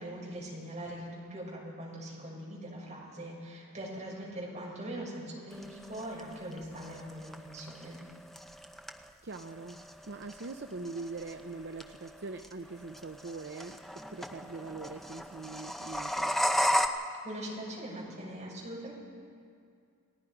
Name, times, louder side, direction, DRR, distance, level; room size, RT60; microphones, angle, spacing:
voice 1, 0.0-7.9 17.2-18.9, right 1 dB, 30° right, -4 dB, 6.2 m, -41 dB
sound 1, 5.5-16.9, equal, ahead, 0.7 m, -35 dB
voice 2, 9.2-13.8 14.1-16.4, right 3 dB, 55° right, 7 dB, 0.7 m, -42 dB
29.5 x 19.0 x 5.0 m, 2.3 s
head